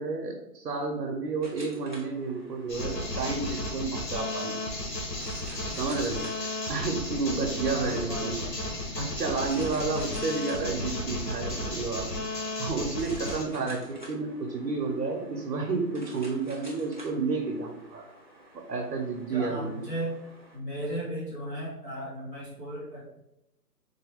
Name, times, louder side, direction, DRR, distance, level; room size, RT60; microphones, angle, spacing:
voice 1, 0.0-4.6 5.7-6.3 6.7-8.4 9.0-12.2 12.6-18.1 18.5-19.9, right 4 dB, 75° right, 0 dB, 0.9 m, -31 dB
sound 1, 1.4-20.6, right 1 dB, 30° left, 0.4 m, -51 dB
sound 2, 2.7-13.4, left 1 dB, 85° left, 1.5 m, -34 dB
voice 2, 7.7-8.5 9.8-10.1 13.5-13.7 19.3-20.2 20.5-23.0, right 1 dB, 10° left, -11 dB, 1.1 m, -35 dB
3.9 x 2.2 x 3.5 m, 0.86 s
hypercardioid pair, 160°, 49 cm